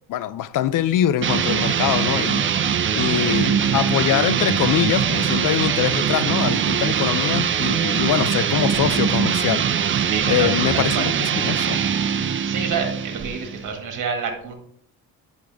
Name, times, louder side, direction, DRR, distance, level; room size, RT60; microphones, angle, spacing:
voice 1, 0.1-9.6 9.9-10.0 10.3-11.8, left 11 dB, 55° left, 0.4 m, -23 dB
sound 1, 1.2-13.7, right 8 dB, 35° right, 0.5 m, -22 dB
voice 2, 10.0-10.5 10.7-11.1 12.1-14.5, right 6 dB, 50° right, 1.8 m, -29 dB
8.6 x 6.4 x 3.4 m
cardioid pair, 120°, 38 cm